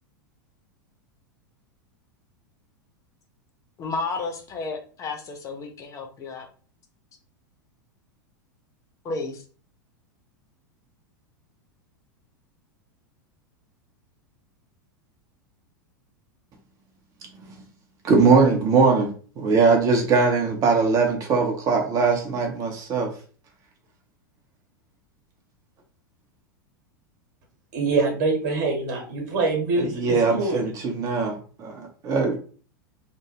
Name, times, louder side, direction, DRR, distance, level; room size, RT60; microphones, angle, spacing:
voice 1, 3.8-6.5 9.0-9.4, left 3 dB, 30° left, 0.6 m, -32 dB
voice 2, 17.2-17.6 18.0-23.2 29.8-32.4, right 4 dB, 30° right, 0.7 m, -21 dB
voice 3, 27.7-30.6, right 3 dB, 55° right, 1.2 m, -24 dB
3.0 x 2.1 x 3.0 m
figure-of-eight pair, 90°, 11 cm